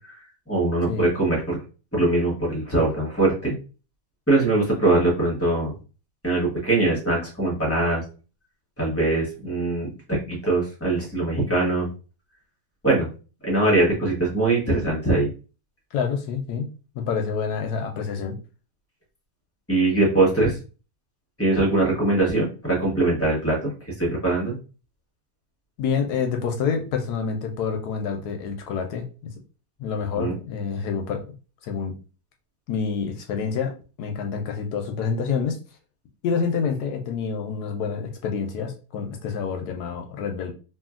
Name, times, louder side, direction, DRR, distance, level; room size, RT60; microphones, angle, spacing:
voice 1, 0.5-1.6 1.9-3.5 4.3-5.7 6.2-8.0 8.8-11.9 12.8-13.1 13.4-15.3 19.7-20.6 21.4-23.7 24.0-24.5 30.2-30.3, right 2 dB, 10° left, -3 dB, 0.8 m, -22 dB
voice 2, 15.9-16.7 17.0-18.4 25.8-29.0 29.8-31.2 31.6-32.0 32.7-33.7 34.0-35.6 36.2-40.5, left 6 dB, 75° left, 4 dB, 1.0 m, -27 dB
2.8 x 2.7 x 2.4 m, 0.34 s
omnidirectional pair, 1.9 m